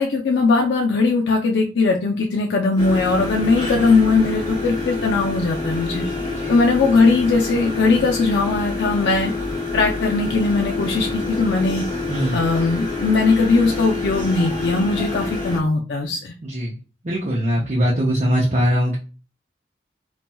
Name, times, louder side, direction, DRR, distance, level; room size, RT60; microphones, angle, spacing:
voice 1, 0.0-6.0 6.5-9.3 9.7-11.9 12.3-16.3, left 3 dB, 85° left, 1 dB, 0.4 m, -19 dB
sound 1, 2.8-15.6, left 3 dB, 25° left, 0.9 m, -27 dB
voice 2, 12.1-12.4 16.4-16.8 17.0-19.0, equal, 40° right, -3 dB, 0.5 m, -21 dB
4.1 x 2.2 x 2.2 m, 0.35 s
head